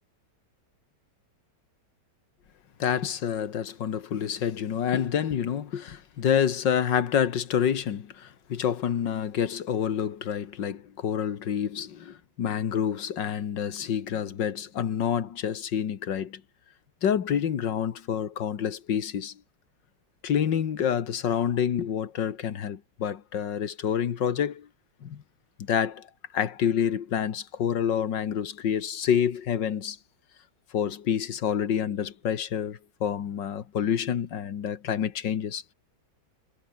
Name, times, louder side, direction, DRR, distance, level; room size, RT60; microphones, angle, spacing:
voice 1, 2.8-16.4 17.0-19.3 20.2-24.7 25.0-25.2 25.6-26.1 26.3-30.0 30.7-35.7, left 8 dB, 85° left, 2.1 m, -28 dB
omnidirectional pair, 1.9 m